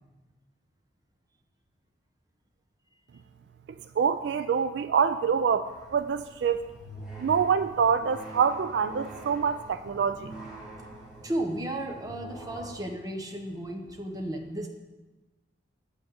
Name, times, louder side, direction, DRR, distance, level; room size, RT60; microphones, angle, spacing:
voice 1, 4.0-6.6 7.2-10.3, right 6 dB, 60° right, 12 dB, 0.3 m, -26 dB
sound 1, 5.6-12.7, right 1 dB, 5° right, 2.7 m, -45 dB
voice 2, 11.2-14.7, right 1 dB, 20° right, 3 dB, 1.0 m, -34 dB
9.2 x 5.3 x 7.7 m, 1.2 s
head